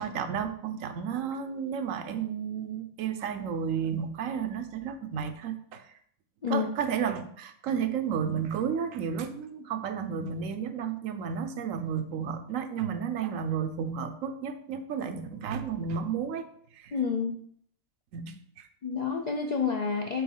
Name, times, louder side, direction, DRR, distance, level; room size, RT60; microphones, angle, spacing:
voice 1, 0.0-5.9 6.5-16.4 16.7-16.9 18.1-18.7, right 7 dB, 75° right, 9 dB, 1.0 m, -32 dB
voice 2, 16.9-17.4 18.8-20.2, left 5 dB, 60° left, 3 dB, 0.4 m, -29 dB
4.6 x 3.9 x 5.4 m, 0.62 s
omnidirectional pair, 1.4 m